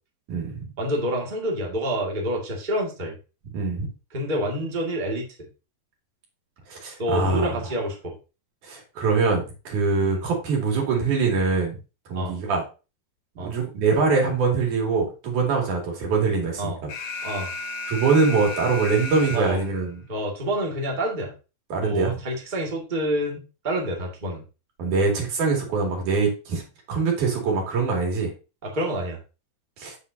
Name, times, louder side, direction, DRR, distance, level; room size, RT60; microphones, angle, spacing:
voice 1, 0.8-3.1 4.1-5.2 7.0-8.1 10.0-10.2 12.1-12.4 13.4-13.5 16.6-16.8 17.2-17.5 19.3-19.6 20.1-21.3 21.8-24.4 28.6-29.2, equal, 20° right, -1 dB, 1.7 m, -27 dB
voice 2, 3.5-3.9 6.7-7.6 8.6-11.8 12.1-12.6 13.4-16.9 17.9-20.0 21.7-22.1 24.8-26.6 26.9-28.3 29.8-30.0, right 4 dB, 75° right, 0 dB, 3.9 m, -23 dB
Alarm, 16.9-19.9, left 2 dB, 75° left, 2.6 m, -33 dB
8.4 x 7.4 x 2.7 m, 0.31 s
omnidirectional pair, 3.5 m